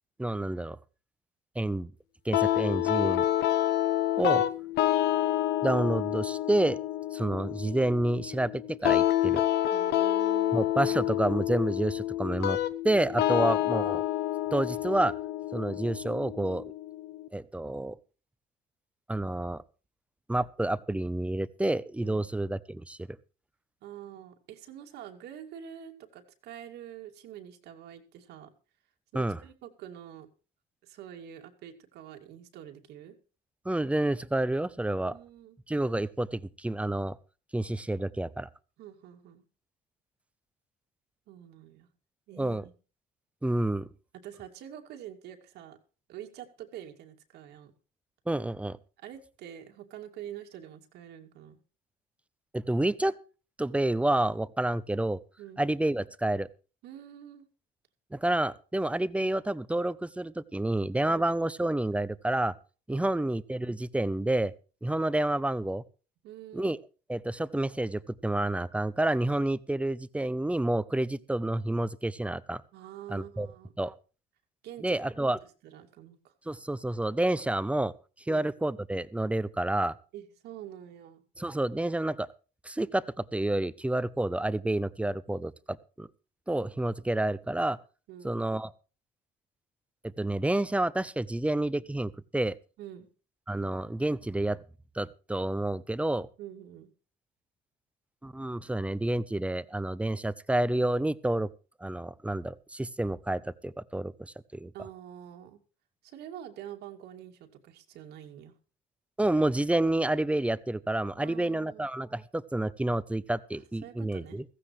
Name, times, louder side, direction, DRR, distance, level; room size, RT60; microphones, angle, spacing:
voice 1, 0.2-0.8 1.6-1.9 2.2-3.2 4.2-4.4 5.6-6.8 7.1-9.4 10.5-12.6 12.8-14.0 14.5-15.1 15.5-16.6 17.3-18.0 19.1-19.6 20.3-23.0 29.1-29.4 33.6-35.2 35.7-37.2 37.5-38.5 42.4-42.6 43.4-43.9 48.3-48.8 52.5-53.2 53.6-55.2 55.6-56.5 58.1-62.5 62.9-64.5 64.8-65.8 66.5-66.8 67.1-72.6 73.1-73.5 73.8-73.9 74.8-75.4 76.5-77.9 78.3-79.9 81.4-82.3 82.6-86.1 86.5-87.8 88.2-88.7 90.0-92.6 93.5-94.6 94.9-96.3 98.2-101.5 101.8-104.7 109.2-114.4, right 1 dB, 5° right, 17 dB, 0.7 m, -29 dB
sound 1, 2.3-17.3, left 12 dB, 80° left, 1.2 m, -28 dB
voice 2, 3.0-3.3 9.7-10.7 13.4-13.6 22.0-22.3 23.8-28.5 29.1-30.3 30.8-33.2 35.0-35.6 38.8-39.4 41.3-41.9 42.3-42.7 44.1-45.8 46.1-47.7 49.0-51.6 55.4-55.6 56.8-57.5 61.1-61.3 62.9-63.3 66.2-66.8 72.7-73.7 74.6-75.0 75.4-76.3 78.3-78.5 80.1-81.2 88.1-88.4 92.8-93.1 96.4-96.9 104.7-105.6 106.0-108.5 111.2-111.8 113.5-114.4, right 10 dB, 80° right, 4 dB, 2.5 m, -46 dB
15.5 x 15.0 x 3.2 m, 0.35 s
cardioid pair, 110°, 17 cm